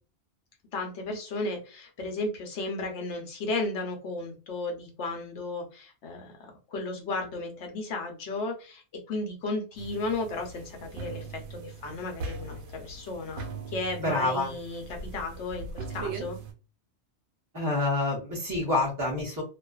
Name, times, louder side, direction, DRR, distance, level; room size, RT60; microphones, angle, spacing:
voice 1, 0.7-8.8 9.1-13.5 13.7-16.4, left 2 dB, 80° left, 3 dB, 1.1 m, -34 dB
sound 1, 9.8-16.5, right 4 dB, 80° right, 0.9 m, -40 dB
voice 2, 14.0-14.5 17.5-19.4, left 2 dB, 20° right, -5 dB, 0.6 m, -27 dB
2.4 x 2.4 x 2.3 m, 0.34 s
omnidirectional pair, 1.2 m